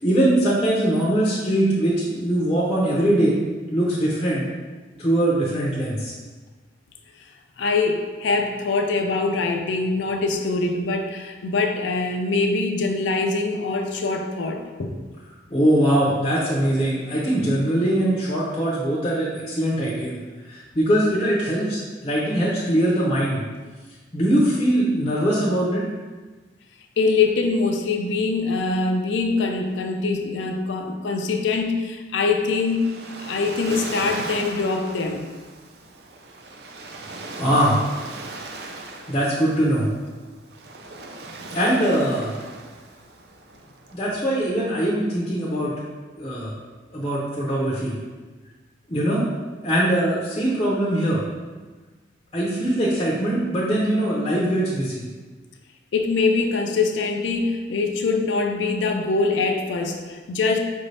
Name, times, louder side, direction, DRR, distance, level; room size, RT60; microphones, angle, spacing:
voice 1, 0.0-3.4 3.7-4.5 5.0-6.1 15.5-20.1 20.5-23.4 24.1-25.9 37.4-37.8 39.1-39.9 41.5-42.3 43.9-45.7 46.2-46.5 46.9-47.9 48.9-49.2 49.6-51.2 52.3-55.0, right 1 dB, 25° left, -6 dB, 0.6 m, -21 dB
voice 2, 7.6-15.0 27.0-32.8 33.2-35.3 55.9-60.6, left 3 dB, 75° left, 4 dB, 0.4 m, -23 dB
Waves surf, 32.2-44.6, right 2 dB, 55° right, 0.4 m, -38 dB
4.9 x 2.6 x 3.2 m, 1.3 s
head